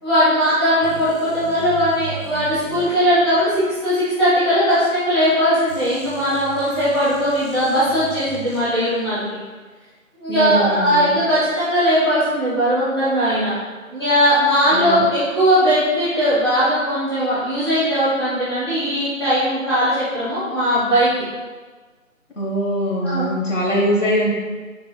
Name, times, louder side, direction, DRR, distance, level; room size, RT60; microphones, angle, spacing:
voice 1, 0.0-9.4 10.1-13.6 13.9-21.1 23.0-23.2, equal, 20° left, -14 dB, 1.1 m, -19 dB
sound 1, 0.8-3.7 5.7-9.1, right 4 dB, 65° right, 1.2 m, -39 dB
voice 2, 10.3-11.1 14.7-15.1 22.4-24.3, equal, 60° left, -4 dB, 1.1 m, -22 dB
4.3 x 4.1 x 2.3 m, 1.4 s
figure-of-eight pair, 170°, 41 cm